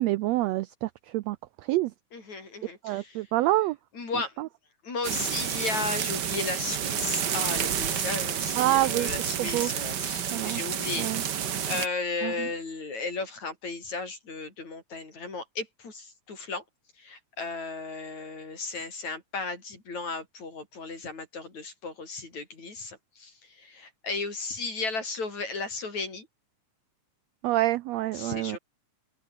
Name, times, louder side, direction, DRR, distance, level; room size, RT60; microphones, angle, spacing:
voice 1, 0.0-1.4 1.7-1.9 2.8-3.8 4.4-4.5 8.6-9.1 9.4-9.7 10.3-10.6 11.0-11.2 12.2-12.5 27.4-28.6, right 16 dB, 90° right, 1.5 m, -27 dB
voice 2, 2.1-3.3 3.9-4.3 4.8-16.6 17.0-26.3 28.1-28.6, left 3 dB, 60° left, 7.9 m, -35 dB
sound 1, 5.0-11.9, right 9 dB, 60° right, 1.1 m, -30 dB
open air
omnidirectional pair, 3.7 m